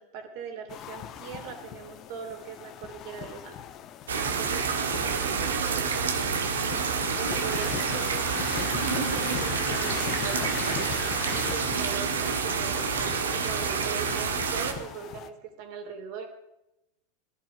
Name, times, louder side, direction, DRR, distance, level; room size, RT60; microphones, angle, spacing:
voice 1, 0.0-3.6 4.2-6.3 6.6-10.8 11.3-16.3, right 6 dB, 60° right, 4 dB, 3.5 m, -40 dB
sound 1, 0.7-15.3, left 10 dB, 45° left, 1.2 m, -39 dB
sound 2, 4.1-14.7, right 5 dB, 90° right, 1.7 m, -28 dB
17.0 x 11.0 x 5.0 m, 0.87 s
hypercardioid pair, 100°, 0 cm